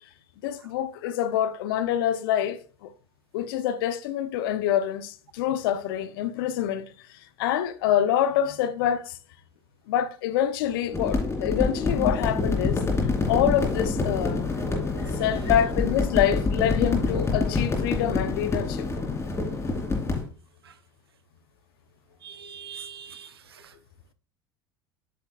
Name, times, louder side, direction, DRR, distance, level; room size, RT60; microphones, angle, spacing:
voice 1, 0.4-2.9 3.3-9.2 9.9-12.8 13.3-14.5 15.1-18.9, left 10 dB, 70° left, 0.7 m, -26 dB
sound 1, 10.9-20.2, left 3 dB, 20° left, 2.9 m, -26 dB
voice 2, 22.2-23.6, right 7 dB, 85° right, 0.6 m, -43 dB
8.6 x 6.5 x 2.4 m
hypercardioid pair, 75°, 12 cm